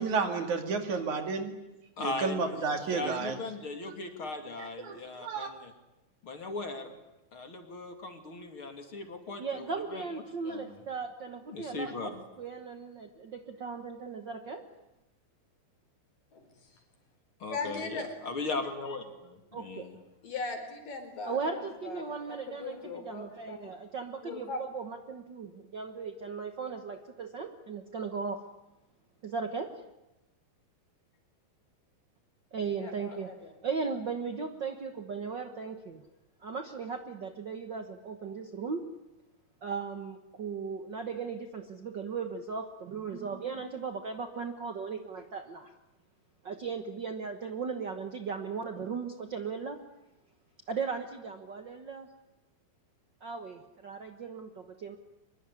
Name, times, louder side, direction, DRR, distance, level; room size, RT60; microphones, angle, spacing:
voice 1, 0.0-1.5 2.0-3.4 4.8-5.5, right 4 dB, 55° right, 6 dB, 3.5 m, -31 dB
voice 2, 2.0-5.7 6.2-6.9 7.3-10.0 10.4-10.8 11.5-12.2 17.4-20.0, left 3 dB, 40° left, 6 dB, 3.1 m, -38 dB
voice 3, 9.4-14.7 19.5-20.0 21.3-28.4 29.2-29.8 32.5-33.3 33.6-36.0 36.4-38.8 39.6-45.7 46.4-49.8 50.7-52.1 53.2-55.0, right 5 dB, 85° right, 7 dB, 0.9 m, -37 dB
voice 4, 17.5-18.1 20.2-23.8 24.2-24.6 32.8-33.5, left 3 dB, 65° left, 6 dB, 5.8 m, -39 dB
25.0 x 22.5 x 9.9 m, 0.97 s
omnidirectional pair, 4.3 m